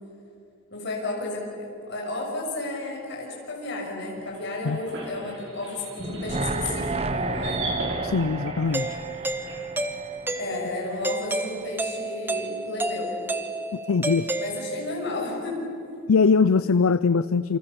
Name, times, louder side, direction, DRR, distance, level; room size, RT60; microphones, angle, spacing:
voice 1, 0.7-7.7 10.4-13.2 14.4-15.7, left 2 dB, 55° left, -1 dB, 6.8 m, -32 dB
sound 1, 4.2-9.6, right 2 dB, 60° right, 6.4 m, -39 dB
sound 2, 6.0-11.1 11.4-11.5, right 2 dB, 30° right, 0.8 m, -32 dB
voice 2, 8.0-9.0 13.9-14.3 16.1-17.6, left 5 dB, 75° left, 15 dB, 0.5 m, -21 dB
Doorbell, 8.7-15.1, right 2 dB, 10° right, 1.1 m, -31 dB
28.0 x 26.5 x 7.0 m, 2.6 s
head